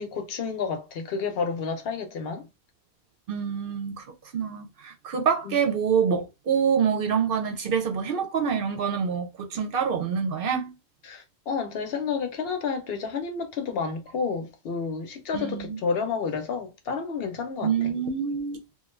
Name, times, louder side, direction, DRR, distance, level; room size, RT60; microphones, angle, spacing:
voice 1, 0.0-2.5 5.4-5.6 11.0-17.7, left 5 dB, 65° left, 0.8 m, -30 dB
voice 2, 3.3-4.0 4.3-10.7 15.3-15.8 17.6-18.8, right 7 dB, 60° right, 0.7 m, -26 dB
2.5 x 2.2 x 3.0 m
omnidirectional pair, 1.1 m